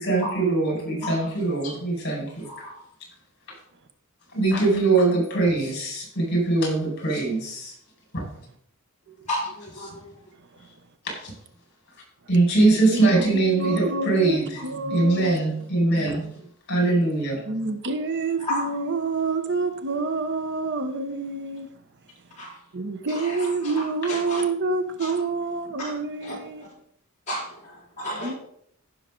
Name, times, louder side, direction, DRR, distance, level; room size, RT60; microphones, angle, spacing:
voice 1, 0.0-2.5 4.3-7.7 8.1-8.2 11.1-11.3 12.3-16.3 16.7-17.4, right 2 dB, 50° left, 5.1 m, -22 dB
voice 2, 9.3-10.1 14.6-14.7 18.4-18.8 22.4-22.6 23.1-24.4 25.0-25.1 25.8-26.0 26.2-26.4 27.3-28.3, left 1 dB, 35° left, 4.2 m, -33 dB
voice 3, 12.6-13.0 13.3-15.4 15.9-16.2 17.5-21.7 22.7-26.6 28.2-28.3, right 3 dB, 55° right, 0.9 m, -28 dB
15.0 x 6.2 x 3.8 m
head